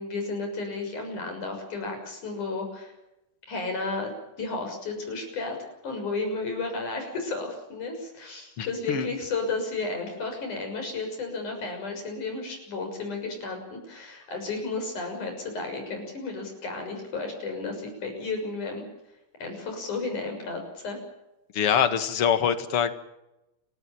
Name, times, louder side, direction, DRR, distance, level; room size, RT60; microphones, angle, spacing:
voice 1, 0.0-2.9 3.5-4.1 4.4-5.6 5.8-18.8 19.4-21.0, left 3 dB, 90° left, 4 dB, 8.1 m, -33 dB
voice 2, 8.6-9.1 21.5-22.9, left 8 dB, 50° left, 10 dB, 2.5 m, -24 dB
30.0 x 13.5 x 9.1 m, 0.92 s
omnidirectional pair, 3.4 m